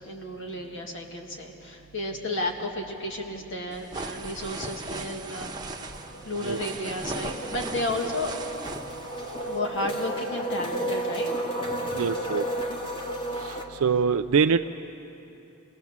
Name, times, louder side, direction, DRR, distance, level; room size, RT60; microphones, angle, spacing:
voice 1, 0.0-8.3 9.5-11.3 11.6-12.1, left 1 dB, 60° left, 2 dB, 2.1 m, -33 dB
sound 1, 3.7-9.6, right 3 dB, 20° right, 1.1 m, -37 dB
sound 2, 5.0-5.1 5.4-13.6, right 1 dB, 25° left, 1.9 m, -33 dB
voice 2, 11.9-12.4 13.4-14.7, right 6 dB, 70° right, 8 dB, 0.4 m, -24 dB
26.0 x 19.5 x 7.3 m, 2.8 s
head